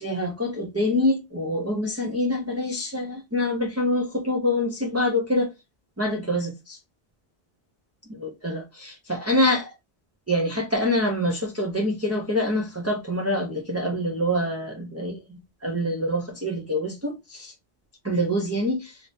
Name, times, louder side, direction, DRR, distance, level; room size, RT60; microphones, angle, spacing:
voice 1, 0.0-5.5 6.0-6.8 8.1-9.7 10.3-17.5 18.0-19.0, left 1 dB, 15° right, 0.6 m, -26 dB
3.9 x 2.6 x 3.4 m
omnidirectional pair, 1.1 m